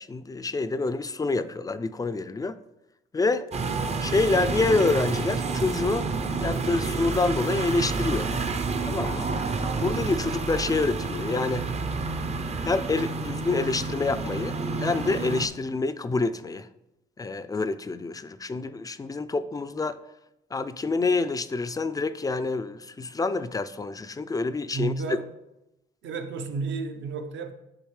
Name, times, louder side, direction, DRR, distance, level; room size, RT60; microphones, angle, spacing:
voice 1, 0.0-2.6 3.1-3.5 4.0-8.3 8.8-9.3 9.8-11.7 12.6-16.7 17.2-20.0 20.5-24.9, left 3 dB, 20° left, 0.3 m, -27 dB
sound 1, 3.5-15.5, right 4 dB, 35° right, 0.6 m, -29 dB
voice 2, 24.7-25.3 26.0-27.5, right 4 dB, 70° right, 0.8 m, -31 dB
10.0 x 3.6 x 3.2 m
cardioid pair, 90°, 20 cm